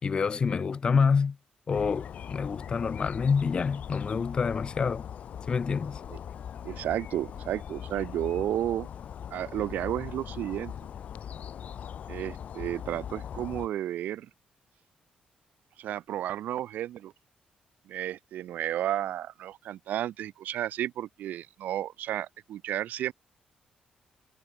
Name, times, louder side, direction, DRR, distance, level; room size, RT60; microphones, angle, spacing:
voice 1, 0.0-1.4 1.7-5.0 5.5-6.0, left 5 dB, 35° left, 2.9 m, -27 dB
sound 1, 1.7-13.7, left 8 dB, 55° left, 4.5 m, -41 dB
voice 2, 6.6-8.9 9.3-10.7 12.1-14.3 15.8-17.1 17.9-23.1, right 12 dB, 80° right, 4.2 m, -32 dB
cardioid pair, 145°, 3 cm